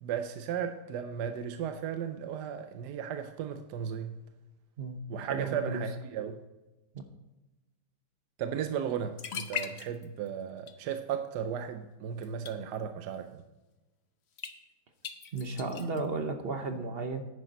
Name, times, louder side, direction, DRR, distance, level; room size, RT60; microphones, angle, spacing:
voice 1, 0.0-4.1 5.1-6.4 8.4-13.4, right 8 dB, 75° right, 7 dB, 1.2 m, -35 dB
voice 2, 5.3-5.8 6.9-7.0 15.3-17.3, right 3 dB, 45° right, 6 dB, 0.9 m, -34 dB
sound 1, 8.9-9.0 9.2-10.3 10.6-11.0 12.2-12.5 14.4-14.5 15.0-16.0, left 7 dB, 50° left, 0.8 m, -38 dB
10.0 x 9.9 x 4.0 m, 1.1 s
omnidirectional pair, 1.8 m